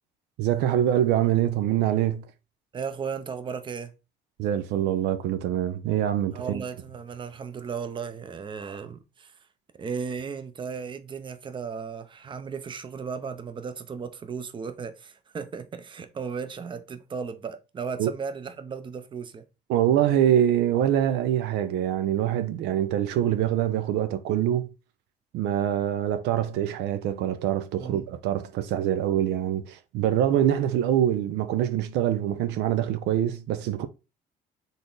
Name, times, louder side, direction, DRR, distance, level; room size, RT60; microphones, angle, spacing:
voice 1, 0.4-2.2 4.4-6.6 18.0-18.1 19.7-24.7 25.3-33.9, right 11 dB, 85° right, 0.6 m, -24 dB
voice 2, 2.7-3.9 6.3-9.4 9.8-19.4 27.8-28.1, right 6 dB, 30° right, 0.6 m, -35 dB
4.1 x 3.4 x 3.9 m
cardioid pair, 110°, 17 cm